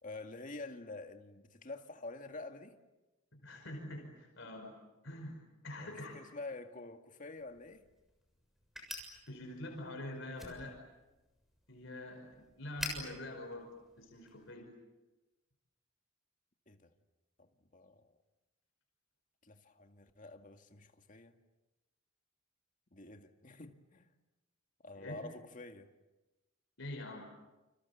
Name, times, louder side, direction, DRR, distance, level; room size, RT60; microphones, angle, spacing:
voice 1, 0.0-2.8 5.8-7.9 16.7-16.9 17.4-18.1 19.4-21.4 22.9-24.1 24.8-25.9, left 2 dB, 40° left, 2.1 m, -48 dB
voice 2, 3.3-6.2 9.3-10.8 11.7-14.8 25.0-25.3 26.8-27.3, left 1 dB, 65° left, 5.4 m, -45 dB
sound 1, 7.4-14.5, left 1 dB, ahead, 6.9 m, -49 dB
29.5 x 28.0 x 7.1 m
head